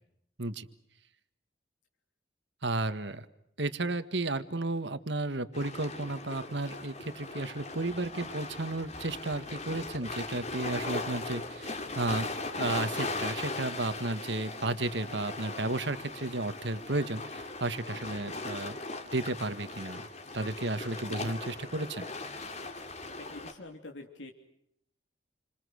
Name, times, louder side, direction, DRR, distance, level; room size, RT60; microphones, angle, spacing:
voice 1, 2.6-3.2 3.6-12.3 12.6-18.8 19.1-20.0 20.3-22.0, right 2 dB, 70° right, 11 dB, 1.7 m, -33 dB
sound 1, 5.5-23.5, left 3 dB, 35° left, 3.0 m, -39 dB
voice 2, 23.1-24.3, left 2 dB, 75° left, 2 dB, 3.1 m, -46 dB
29.0 x 27.0 x 6.5 m, 0.74 s
head